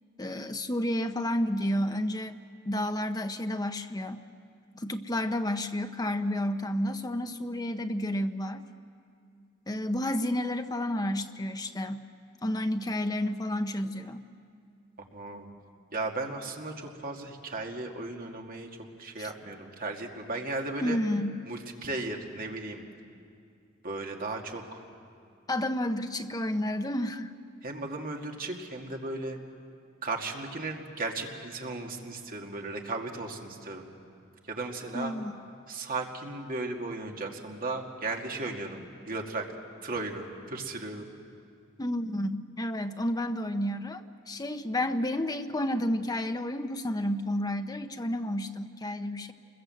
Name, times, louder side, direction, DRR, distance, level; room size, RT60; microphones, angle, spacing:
voice 1, 0.2-2.4 2.7-4.2 4.7-8.6 9.7-12.1 12.4-14.2 19.2-19.3 20.8-21.4 25.5-27.3 34.9-35.4 41.8-49.3, left 1 dB, 20° left, 8 dB, 0.9 m, -31 dB
voice 2, 15.1-15.5 15.9-18.7 19.0-21.0 21.5-22.8 23.8-24.8 27.6-29.4 30.0-33.9 34.5-35.1 35.7-39.4 39.8-41.1, right 2 dB, 45° right, 2 dB, 2.2 m, -36 dB
28.0 x 21.5 x 7.8 m, 2.4 s
head